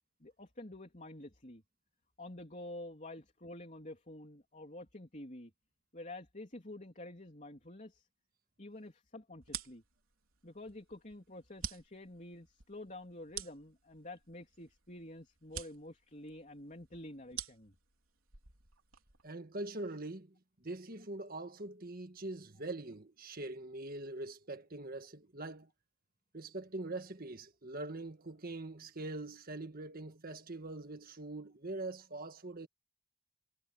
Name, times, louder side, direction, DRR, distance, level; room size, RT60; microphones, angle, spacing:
voice 1, 0.2-1.6 2.2-5.5 5.9-8.1 8.6-9.8 10.4-17.7, left 1 dB, 35° left, 3.5 m, -49 dB
sound 1, 9.4-19.3, right 9 dB, 75° right, 3.5 m, -48 dB
voice 2, 19.2-25.7 26.3-32.7, right 2 dB, 45° right, 1.7 m, -43 dB
head